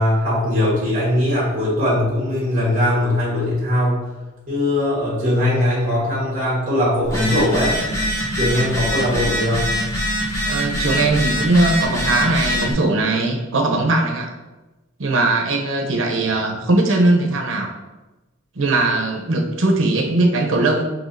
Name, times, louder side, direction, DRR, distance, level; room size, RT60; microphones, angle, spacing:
voice 1, 0.0-4.1 4.5-7.8 8.4-9.8, left 1 dB, 40° right, -7 dB, 1.4 m, -20 dB
Telephone, 7.0-12.7, equal, 15° left, 0.9 m, -23 dB
voice 2, 10.5-14.3 15.0-17.7 18.6-20.9, right 2 dB, 75° right, 2 dB, 0.7 m, -19 dB
5.9 x 2.8 x 2.7 m, 1.1 s
head